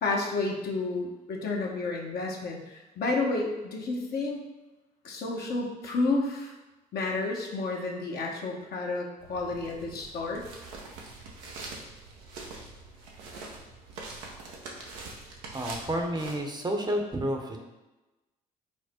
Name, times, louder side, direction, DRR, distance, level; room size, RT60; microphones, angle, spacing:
voice 1, 0.0-4.4 5.0-6.5 6.9-10.4 13.3-13.4, left 3 dB, 55° left, -1 dB, 0.9 m, -31 dB
sound 1, 9.2-16.3, right 3 dB, 80° right, 0.8 m, -44 dB
voice 2, 15.5-17.6, right 1 dB, 20° right, 2 dB, 0.8 m, -30 dB
4.8 x 2.1 x 4.2 m, 1.1 s
hypercardioid pair, 50°, 19 cm